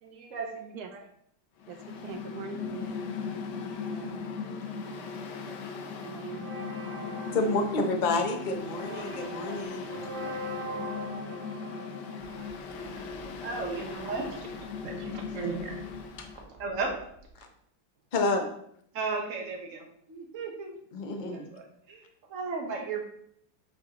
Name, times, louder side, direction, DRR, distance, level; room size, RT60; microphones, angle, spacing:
voice 1, 0.0-1.0 4.4-4.6 5.4-5.6 8.8-9.8 12.3-14.5 14.8-15.8 16.6-16.9 18.9-20.8 21.3-23.0, right 4 dB, 45° right, 1 dB, 1.5 m, -37 dB
Mechanical fan, 1.6-16.4, left 5 dB, 70° left, 1.3 m, -38 dB
voice 2, 1.7-3.4 3.9-4.3 4.6-5.1 6.0-6.5, right 6 dB, 70° right, 6 dB, 0.9 m, -43 dB
sound 1, 6.3-13.0, equal, 90° right, 2.8 m, -41 dB
voice 3, 7.3-9.9 16.2-16.3 17.4-17.5 18.1-18.5 20.9-21.5, left 2 dB, 45° left, 5 dB, 0.6 m, -29 dB
sound 2, 12.2-17.3, equal, 5° left, 1.1 m, -54 dB
7.4 x 5.8 x 3.0 m, 0.69 s
omnidirectional pair, 2.0 m